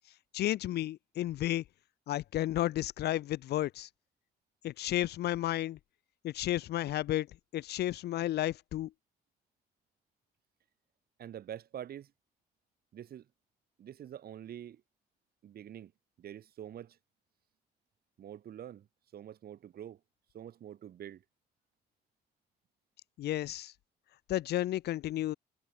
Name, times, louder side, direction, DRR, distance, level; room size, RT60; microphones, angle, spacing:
voice 1, 0.3-1.6 2.1-3.9 4.6-5.8 6.2-7.3 7.5-8.9 23.2-23.7 24.3-25.3, left 14 dB, 75° left, 0.9 m, -32 dB
voice 2, 11.2-12.1 12.9-13.3 13.8-14.8 15.4-15.9 16.2-17.0 18.2-18.9 19.1-20.0 20.3-21.2, right 10 dB, 65° right, 4.3 m, -46 dB
cardioid pair, 75°, 17 cm